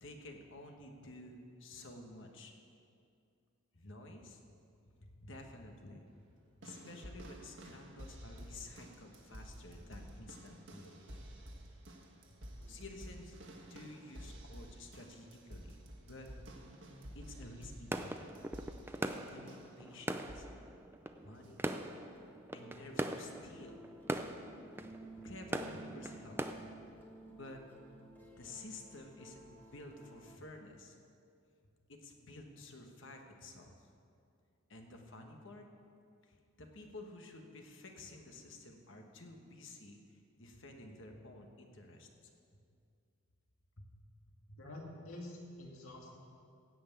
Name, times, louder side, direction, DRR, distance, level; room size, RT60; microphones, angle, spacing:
voice 1, 0.0-2.5 3.7-4.4 5.0-6.1 6.6-11.0 12.7-15.8 16.0-16.3 17.1-18.3 18.8-20.5 21.1-21.7 22.5-23.8 25.2-26.4 27.3-27.6 28.4-31.0 31.9-33.9 34.7-35.7 36.2-42.1 43.8-43.9 44.5-44.6, left 2 dB, 55° left, 3 dB, 1.3 m, -52 dB
sound 1, 6.6-19.8 20.3-20.6 21.4-21.5, right 1 dB, 55° right, 1.5 m, -51 dB
sound 2, 17.9-26.5, right 1 dB, 10° right, 0.4 m, -41 dB
sound 3, 21.6-30.4, right 2 dB, 10° left, 1.3 m, -55 dB
voice 2, 44.6-46.2, left 1 dB, 75° left, -2 dB, 2.2 m, -48 dB
16.5 x 5.8 x 8.4 m, 2.4 s
head